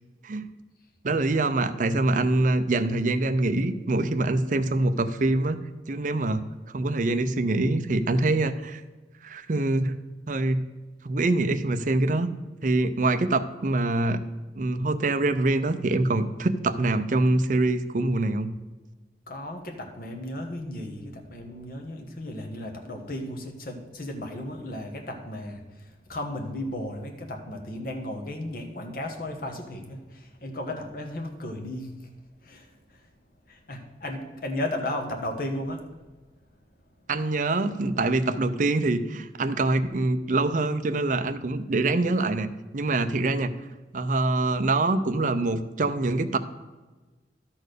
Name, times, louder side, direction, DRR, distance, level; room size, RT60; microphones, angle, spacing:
voice 1, 1.0-5.6 5.9-6.5 6.7-8.8 9.2-10.0 10.3-10.7 11.0-12.3 12.6-14.2 14.6-18.5 37.1-43.5 43.9-46.4, right 2 dB, 45° right, 10 dB, 0.5 m, -24 dB
voice 2, 19.3-32.1 32.4-32.7 33.5-35.8, left 1 dB, 55° left, 3 dB, 1.3 m, -35 dB
12.0 x 4.4 x 6.6 m, 1.2 s
head